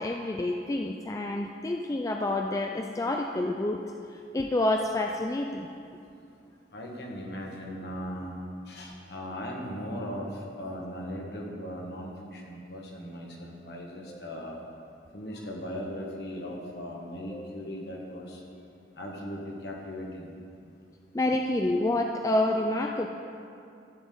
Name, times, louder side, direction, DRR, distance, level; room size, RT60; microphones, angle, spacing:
voice 1, 0.0-3.8 4.1-5.7 14.1-14.4 17.3-17.7 21.1-23.1, left 1 dB, 20° left, 2 dB, 0.3 m, -28 dB
voice 2, 6.7-8.3 8.7-14.6 15.1-18.4 19.0-20.3, equal, 60° left, -1 dB, 1.6 m, -38 dB
13.5 x 7.2 x 3.9 m, 2.5 s
head